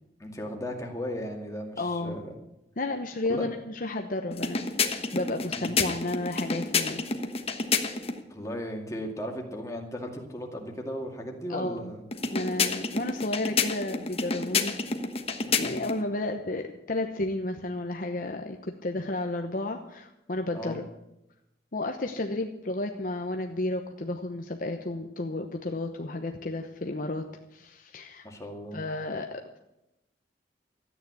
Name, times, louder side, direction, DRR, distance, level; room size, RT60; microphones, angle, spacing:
voice 1, 0.2-2.3 3.3-3.5 5.5-5.8 8.3-12.0 15.5-15.7 20.5-20.8 28.2-28.8, equal, 15° left, 1 dB, 2.3 m, -36 dB
voice 2, 1.8-2.2 2.8-4.7 5.1-7.0 11.5-11.9 12.3-14.8 15.5-20.9 21.7-27.3 27.5-28.2 28.7-29.6, left 2 dB, 50° left, 4 dB, 0.9 m, -32 dB
sound 1, 4.3-8.2 12.1-16.0, left 4 dB, 35° left, 1.2 m, -29 dB
13.5 x 9.3 x 8.3 m, 0.89 s
head